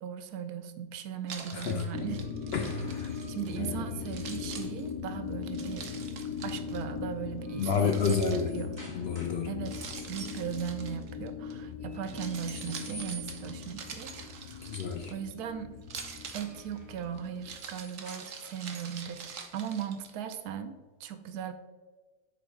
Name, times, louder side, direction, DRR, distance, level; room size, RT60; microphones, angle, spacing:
voice 1, 0.0-2.2 3.1-5.9 6.4-8.7 9.5-9.8 10.1-14.8 15.1-15.7 16.3-21.5, right 8 dB, 80° right, 9 dB, 1.1 m, -38 dB
Keys jangling, 1.3-3.7 4.1-6.8 7.6-8.8 9.7-11.5 11.9-15.3 15.8-20.4, right 6 dB, 55° right, 1.0 m, -45 dB
voice 2, 1.5-1.8 2.5-3.1 3.5-3.9 7.6-8.5 8.9-9.5 14.6-15.1, left 6 dB, 65° left, 3 dB, 0.6 m, -30 dB
sound 1, 1.6-4.5 6.3-6.6 7.0-9.5 9.7-10.3 11.8-13.7 16.0-18.9, right 1 dB, 15° right, 1.3 m, -52 dB
sound 2, 1.9-17.6, left 6 dB, 80° left, 1.1 m, -40 dB
7.5 x 4.7 x 3.5 m, 1.3 s
omnidirectional pair, 1.7 m